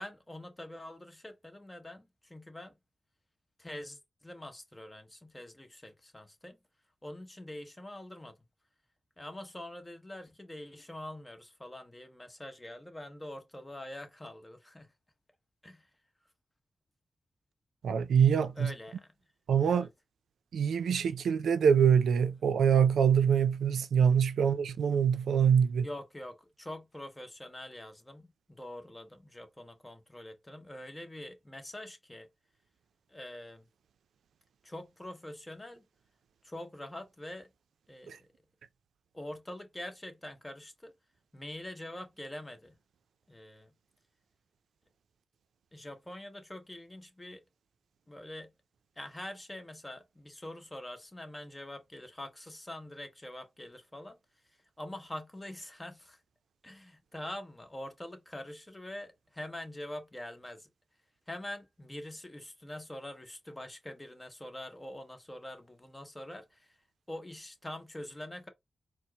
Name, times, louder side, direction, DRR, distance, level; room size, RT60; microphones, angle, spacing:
voice 1, 0.0-2.8 3.6-6.6 7.0-8.4 9.2-14.9 15.6-15.9 18.6-19.1 19.5-19.9 24.4-24.6 25.8-32.3 33.1-33.7 34.6-35.8 36.4-37.5 37.9-38.3 39.1-40.9 41.3-42.8 43.3-43.7 45.7-47.4 48.1-48.5 49.0-54.2 54.4-56.2 56.6-60.7 61.3-68.5, left 1 dB, 20° left, 1.1 m, -45 dB
voice 2, 17.8-18.7 19.5-19.9 20.5-25.9 38.1-38.2, right 7 dB, 85° right, 0.4 m, -25 dB
4.3 x 2.1 x 2.9 m
cardioid pair, 55°, 0 cm